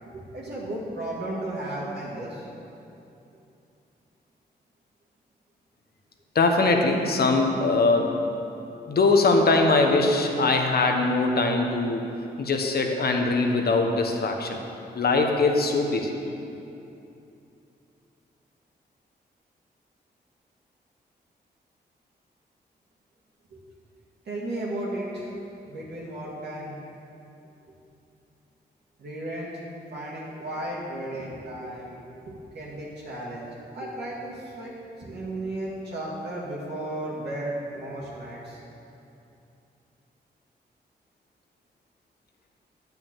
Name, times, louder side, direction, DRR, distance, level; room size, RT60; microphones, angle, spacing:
voice 1, 0.1-2.5 23.5-23.6 24.3-25.4 25.6-26.8 29.0-29.5 29.9-33.5 33.7-38.6, right 1 dB, 75° right, -7 dB, 2.1 m, -34 dB
voice 2, 6.3-8.2 8.9-12.0 12.4-14.6 14.9-16.2, left 3 dB, 65° left, 3 dB, 1.1 m, -22 dB
9.1 x 5.8 x 7.4 m, 2.8 s
cardioid pair, 70°, 18 cm